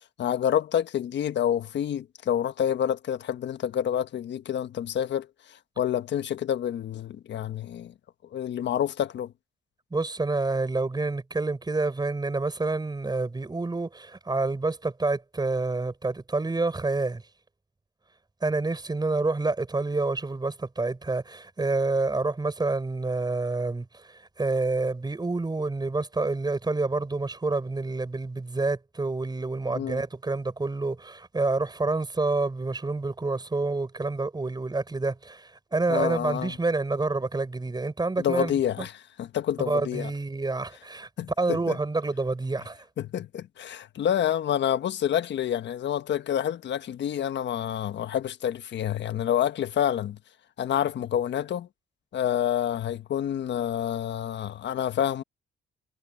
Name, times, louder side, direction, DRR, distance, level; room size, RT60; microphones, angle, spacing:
voice 1, 0.2-5.3 5.8-7.9 8.3-9.3 29.7-30.0 35.9-36.5 38.2-40.1 41.2-41.8 43.0-50.2 50.6-51.7 52.1-55.2, left 10 dB, 65° left, 1.3 m, -28 dB
voice 2, 9.9-17.2 18.4-38.9 39.6-41.1 41.4-42.8, right 3 dB, 20° right, 6.9 m, -28 dB
cardioid pair, 90°, 20 cm